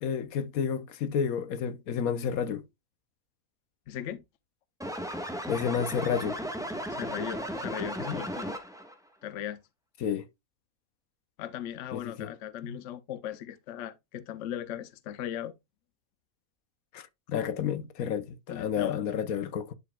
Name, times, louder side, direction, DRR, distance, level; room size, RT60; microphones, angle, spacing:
voice 1, 0.0-2.6 5.5-6.4 10.0-10.3 11.9-12.3 12.6-12.8 16.9-19.7, left 7 dB, 85° left, 1.3 m, -31 dB
voice 2, 3.9-4.2 6.9-8.6 9.2-9.6 11.4-15.5 18.5-19.0, left 10 dB, 65° left, 1.0 m, -38 dB
sound 1, 4.8-8.9, equal, 5° right, 1.2 m, -35 dB
11.0 x 4.8 x 2.3 m
omnidirectional pair, 1.5 m